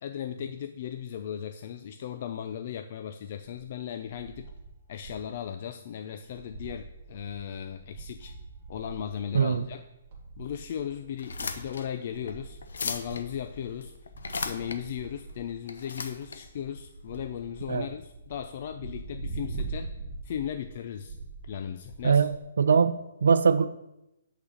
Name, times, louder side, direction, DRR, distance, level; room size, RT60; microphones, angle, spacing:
voice 1, 0.0-4.5 4.9-8.4 8.7-9.8 10.4-13.9 14.4-19.9 20.2-21.2 21.5-22.3, left 9 dB, 35° left, 8 dB, 0.3 m, -37 dB
sound 1, 3.4-5.4 5.7-5.8 6.1-22.4, right 4 dB, 25° right, 1.7 m, -43 dB
sound 2, 11.1-17.6, left 4 dB, 85° left, 0.8 m, -38 dB
voice 2, 22.0-23.6, right 6 dB, 75° right, 13 dB, 0.5 m, -22 dB
8.5 x 4.1 x 6.4 m, 0.89 s
hypercardioid pair, 175°, 0 cm